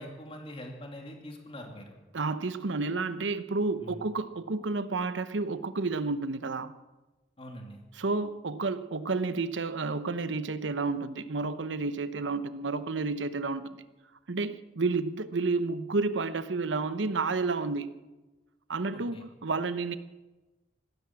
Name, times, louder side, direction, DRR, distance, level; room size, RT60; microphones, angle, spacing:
voice 1, 0.0-1.9 3.8-4.1 7.4-7.8 18.9-19.3, equal, 30° left, 2 dB, 2.7 m, -44 dB
voice 2, 2.1-6.7 8.0-13.8 14.3-17.9 18.7-20.0, right 3 dB, 90° right, 13 dB, 0.9 m, -31 dB
15.0 x 13.0 x 7.5 m, 1.1 s
head